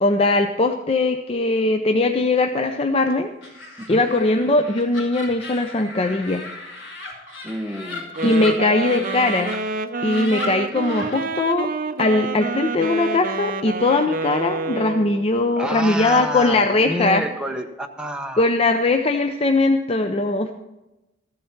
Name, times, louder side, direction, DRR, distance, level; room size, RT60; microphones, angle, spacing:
voice 1, 0.0-3.3 3.9-6.4 8.2-9.5 10.0-11.7 12.0-17.3 18.4-20.5, left 2 dB, 30° left, 6 dB, 0.5 m, -20 dB
Laughter, 3.4-9.6 9.9-11.2, left 3 dB, 70° left, 4.1 m, -36 dB
voice 2, 7.4-8.1 15.6-18.5, equal, 5° right, 3 dB, 0.8 m, -29 dB
Wind instrument woodwind instrument, 8.1-15.3, right 3 dB, 50° right, 0.6 m, -28 dB
14.5 x 7.7 x 5.7 m, 0.99 s
head